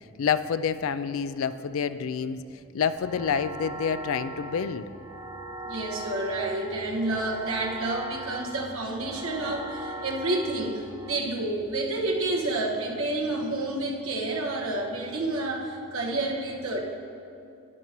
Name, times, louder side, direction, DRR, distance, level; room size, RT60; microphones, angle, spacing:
voice 1, 0.2-2.4 2.7-4.9, left 6 dB, 65° left, 12 dB, 0.3 m, -28 dB
sound 1, 3.0-11.1, right 2 dB, 20° right, 1.7 m, -40 dB
voice 2, 5.6-16.8, right 2 dB, 65° right, -1 dB, 1.3 m, -29 dB
12.5 x 10.5 x 3.0 m, 2.6 s
head